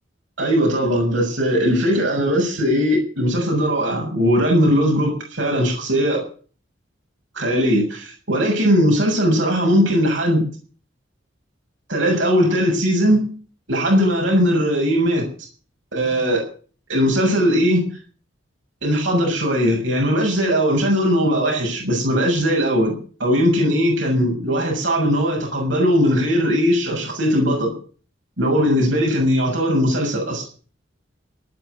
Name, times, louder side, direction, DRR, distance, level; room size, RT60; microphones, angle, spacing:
voice 1, 0.4-6.2 7.3-10.4 11.9-13.3 13.7-15.3 15.9-16.4 16.9-17.9 18.8-22.9 23.2-27.7 28.4-30.4, equal, 70° right, 0 dB, 6.8 m, -19 dB
18.5 x 7.4 x 9.5 m, 0.42 s
head